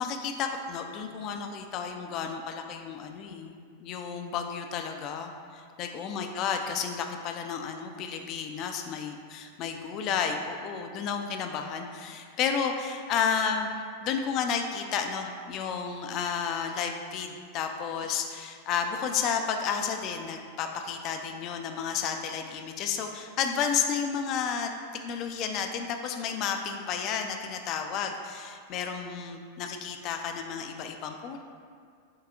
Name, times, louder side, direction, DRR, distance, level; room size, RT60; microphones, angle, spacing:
voice 1, 0.0-13.7 14.0-24.7 25.0-31.4, left 7 dB, 40° left, 5 dB, 0.4 m, -32 dB
6.6 x 2.7 x 2.5 m, 2.2 s
figure-of-eight pair, 90°, 0 cm